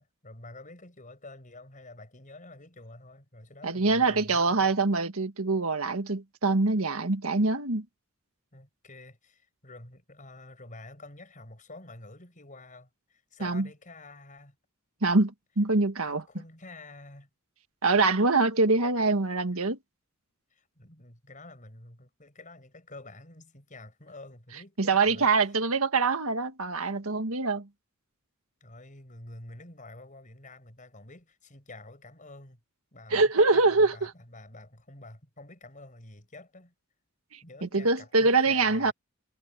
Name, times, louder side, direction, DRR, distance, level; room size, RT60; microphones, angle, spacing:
voice 1, 0.0-4.7 8.5-14.6 16.0-17.3 20.5-25.3 28.6-32.6 32.9-36.7 37.4-38.9, left 2 dB, 35° left, 6.3 m, -48 dB
voice 2, 3.6-7.9 13.4-13.7 15.0-16.2 17.8-19.8 24.8-27.7 33.1-34.1 37.3-38.9, right 3 dB, 80° right, 1.8 m, -24 dB
head